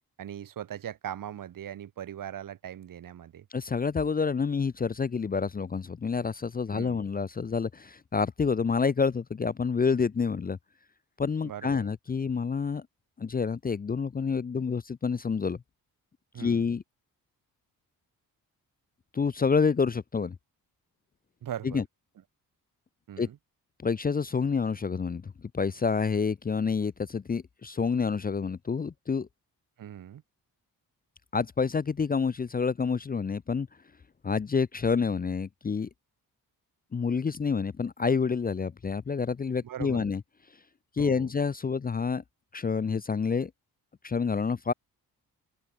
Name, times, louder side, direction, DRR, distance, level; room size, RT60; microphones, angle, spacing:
voice 1, 0.2-3.4 6.7-7.1 11.4-11.9 16.3-16.7 21.4-21.8 23.1-23.4 29.8-30.2 39.6-40.1 41.0-41.3, right 10 dB, 60° right, 1.3 m, -40 dB
voice 2, 3.5-10.6 11.2-12.9 13.2-15.6 16.4-16.8 19.1-20.4 21.6-21.8 23.2-23.3 23.8-29.3 31.3-33.7 34.2-35.9 36.9-40.2 41.0-42.2 42.5-43.5 44.0-44.7, left 5 dB, 25° left, 0.6 m, -28 dB
open air
cardioid pair, 115°, 37 cm